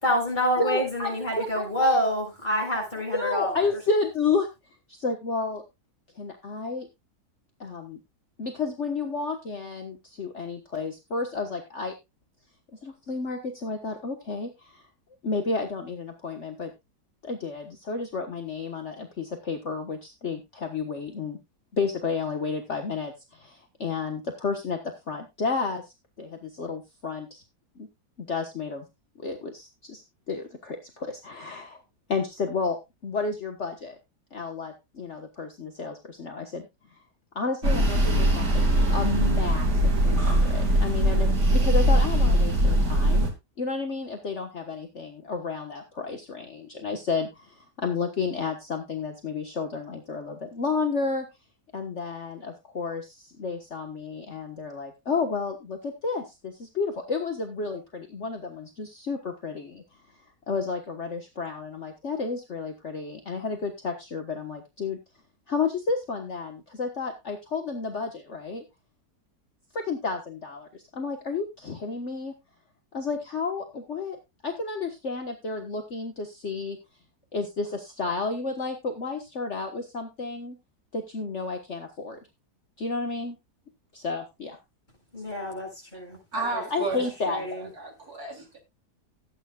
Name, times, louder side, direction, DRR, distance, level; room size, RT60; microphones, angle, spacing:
voice 1, 0.0-3.8 85.1-86.6 87.3-87.7, equal, 25° left, 7.2 m, -27 dB
voice 2, 0.6-2.0 3.1-4.5 4.9-5.6 6.2-6.9 7.6-8.0 8.4-11.9 12.8-14.8 15.2-16.7 17.2-21.4 21.7-27.4 27.8-27.9 28.2-28.8 29.2-31.8 32.1-34.0 34.3-36.7 37.3-43.3 43.6-51.3 51.7-59.8 60.5-65.0 65.5-68.6 69.7-72.3 72.9-74.2 74.4-76.8 77.3-80.6 80.9-82.2 82.8-83.4 83.9-84.6 86.7-87.4, left 4 dB, 45° left, 1.6 m, -31 dB
sound 1, 37.6-43.3, right 1 dB, 80° right, 3.2 m, -21 dB
voice 3, 86.3-88.6, right 3 dB, 65° right, 4.0 m, -33 dB
17.0 x 9.2 x 2.4 m
omnidirectional pair, 1.7 m